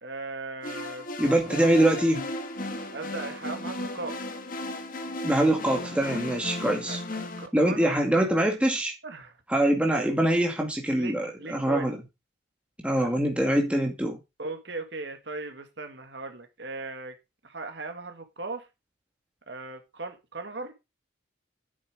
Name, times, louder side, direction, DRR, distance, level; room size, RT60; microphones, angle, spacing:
voice 1, 0.0-1.7 2.9-4.2 6.9-7.9 8.2-8.4 9.0-9.3 10.9-11.9 13.0-13.1 14.4-17.2 17.4-18.7 19.5-20.7, right 3 dB, 60° right, 1.8 m, -38 dB
sound 1, 0.6-7.5, left 1 dB, 45° left, 1.5 m, -35 dB
voice 2, 1.2-2.2 5.2-7.0 7.5-8.9 9.5-12.0 12.8-14.2, right 1 dB, 5° right, 2.1 m, -24 dB
9.5 x 7.5 x 4.9 m
head